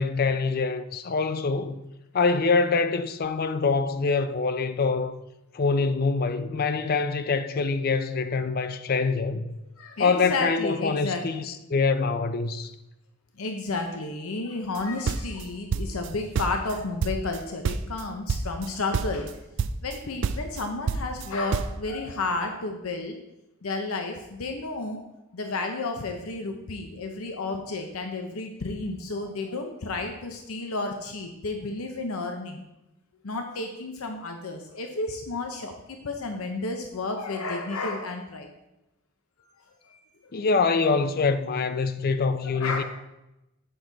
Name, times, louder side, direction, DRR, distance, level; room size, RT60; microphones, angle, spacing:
voice 1, 0.0-1.8 2.1-5.1 5.5-9.4 10.0-12.7 40.3-42.8, left 4 dB, 45° left, 0.5 m, -25 dB
voice 2, 9.8-11.5 13.4-19.4 19.8-23.2 23.6-25.0 25.3-32.6 33.2-38.5 39.8-40.4 42.4-42.8, left 3 dB, 90° left, 0.7 m, -32 dB
sound 1, 14.8-16.1 16.4-17.4 17.6-18.0 18.3-18.7 18.9-19.3 19.6-20.0 20.2-21.8, right 5 dB, 60° right, 0.4 m, -28 dB
7.7 x 6.2 x 3.9 m
head